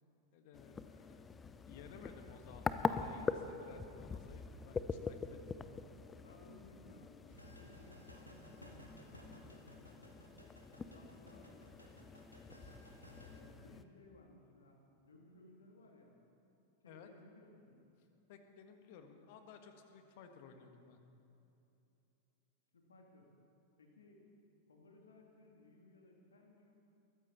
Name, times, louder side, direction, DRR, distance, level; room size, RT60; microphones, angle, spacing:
voice 1, 0.3-1.2 1.7-5.9 16.9-17.1 18.3-21.0, left 6 dB, 50° left, 6 dB, 1.5 m, -57 dB
sound 1, 0.5-13.8, left 4 dB, 15° left, 0.7 m, -44 dB
voice 2, 6.2-10.3 10.8-12.1 13.3-16.2 16.8-17.9 22.7-23.3 23.8-24.2 24.7-26.7, left 2 dB, 70° left, 0 dB, 2.7 m, -61 dB
sound 2, 7.3-13.4, equal, 90° left, 1.9 m, -58 dB
21.5 x 14.5 x 4.2 m, 2.8 s
figure-of-eight pair, 90°, 0 cm